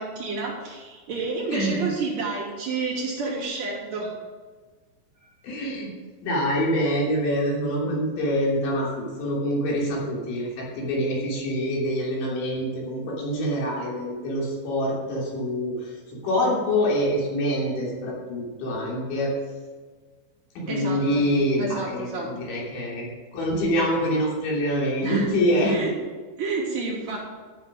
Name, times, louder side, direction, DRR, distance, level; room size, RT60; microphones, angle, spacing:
voice 1, 0.0-4.1 20.7-21.2 21.6-22.3 25.0-25.3 25.7-26.0 26.4-27.2, right 3 dB, 45° right, -7 dB, 4.2 m, -29 dB
voice 2, 1.5-1.9 5.4-5.9 6.2-15.9 16.2-19.3 20.6-25.8, equal, 70° left, -4 dB, 5.4 m, -25 dB
14.5 x 7.9 x 5.1 m, 1.4 s
omnidirectional pair, 5.5 m